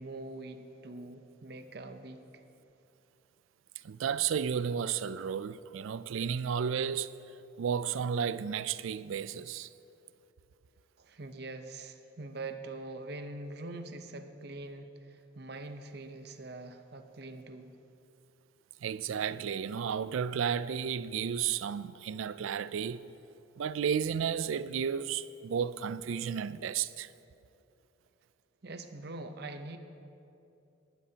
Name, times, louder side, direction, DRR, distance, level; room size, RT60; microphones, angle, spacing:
voice 1, 0.0-2.2 11.0-17.7 28.6-29.8, right 2 dB, 55° right, 0.8 m, -43 dB
voice 2, 3.8-7.2 7.6-9.7 18.8-23.0 23.6-27.1, right 7 dB, 80° right, 0.4 m, -33 dB
18.5 x 12.5 x 2.9 m
head